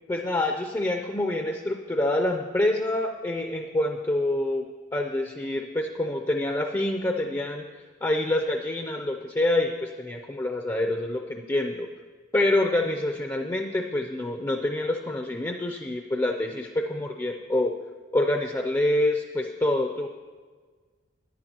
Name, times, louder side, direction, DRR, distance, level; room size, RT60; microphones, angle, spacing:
voice 1, 0.1-4.6 4.9-7.6 8.0-11.9 12.3-17.7 18.1-20.1, left 1 dB, 15° left, 3 dB, 0.4 m, -26 dB
13.5 x 10.5 x 2.9 m, 1.5 s
head